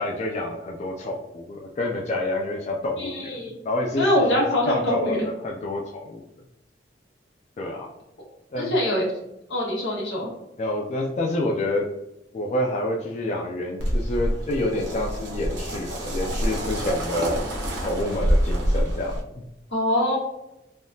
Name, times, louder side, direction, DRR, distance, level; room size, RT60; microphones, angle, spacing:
voice 1, 0.0-3.4 3.6-6.2 7.6-7.9 8.5-8.7 10.6-11.9 12.3-17.3 17.8-19.2, left 1 dB, 40° left, -1 dB, 0.3 m, -28 dB
voice 2, 3.0-3.5 4.0-5.2 8.6-9.1 9.5-10.3 19.7-20.2, left 1 dB, 80° left, -5 dB, 1.4 m, -23 dB
sound 1, 13.8-19.2, equal, 75° right, 0.7 m, -26 dB
3.5 x 2.3 x 2.6 m, 0.89 s
head